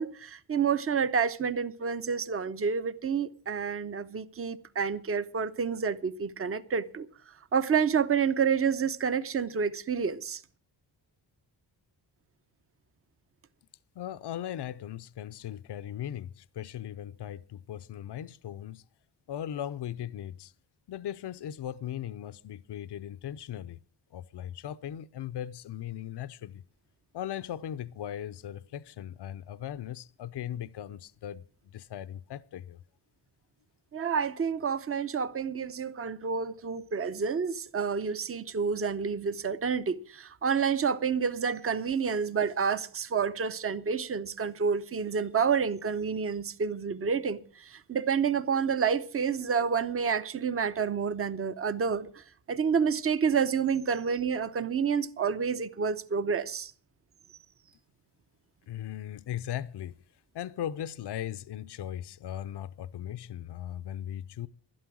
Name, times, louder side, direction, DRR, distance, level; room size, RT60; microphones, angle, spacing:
voice 1, 0.0-7.1 7.5-10.4 33.9-56.7, right 6 dB, 30° right, 0.7 m, -29 dB
voice 2, 14.0-18.8 19.3-20.5 20.9-23.8 24.1-26.6 27.1-31.4 31.7-32.8 58.7-59.9 60.3-64.5, left 11 dB, 65° left, 0.7 m, -38 dB
12.0 x 11.5 x 6.1 m
wide cardioid pair, 135°, 44 cm